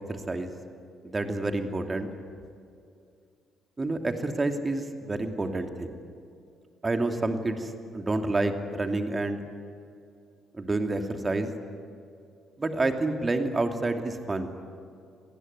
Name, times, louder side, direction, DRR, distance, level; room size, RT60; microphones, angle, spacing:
voice 1, 0.1-0.5 1.0-2.1 3.8-6.0 6.8-9.4 10.5-11.5 12.6-14.5, right 2 dB, 25° right, 5 dB, 2.7 m, -29 dB
26.5 x 19.5 x 9.6 m, 2.4 s
figure-of-eight pair, 45°, 0 cm